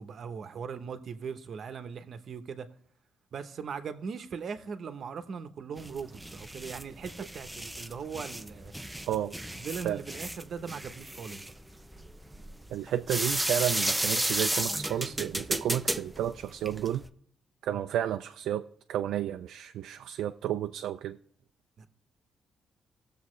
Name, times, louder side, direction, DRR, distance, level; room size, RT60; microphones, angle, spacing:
voice 1, 0.0-2.7 3.3-8.7 9.5-11.4 17.7-17.8 21.8-21.9, right 6 dB, 50° right, 0.8 m, -39 dB
sound 1, 5.8-17.1, right 1 dB, 5° right, 0.4 m, -33 dB
voice 2, 12.7-17.0 17.6-21.2, right 11 dB, 90° right, 0.3 m, -32 dB
18.5 x 7.0 x 3.2 m
cardioid pair, 145°, 0 cm